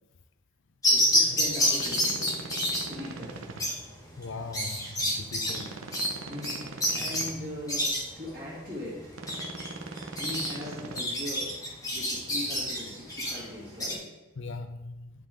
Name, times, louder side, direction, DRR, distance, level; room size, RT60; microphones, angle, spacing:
sound 1, 0.8-13.9, equal, 15° left, 1.3 m, -29 dB
voice 1, 0.9-2.3 2.9-3.5 6.3-9.2 10.1-14.2, left 1 dB, 40° right, 2.1 m, -40 dB
sound 2, 1.7-3.6 5.4-7.3 9.1-11.0, right 3 dB, 70° right, 0.8 m, -41 dB
voice 2, 4.2-5.8 14.4-15.1, left 3 dB, 60° left, 0.6 m, -40 dB
10.0 x 4.0 x 3.8 m
head